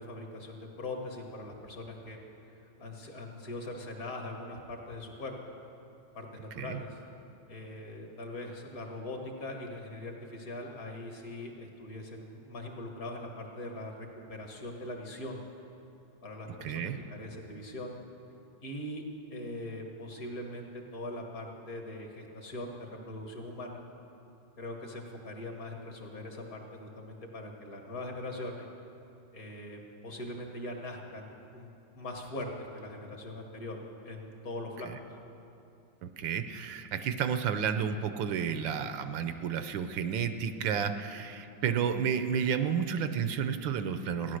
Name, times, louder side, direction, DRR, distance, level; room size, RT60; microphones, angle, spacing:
voice 1, 0.0-2.2 2.8-5.5 6.2-7.0 7.5-15.4 16.2-17.9 18.6-19.0 19.3-23.8 24.6-28.7 29.3-33.8 34.0-34.9, left 1 dB, 50° left, 2 dB, 1.9 m, -41 dB
voice 2, 16.6-17.0 36.0-44.4, right 7 dB, 75° right, 9 dB, 1.4 m, -31 dB
16.0 x 10.5 x 6.4 m, 2.8 s
omnidirectional pair, 2.1 m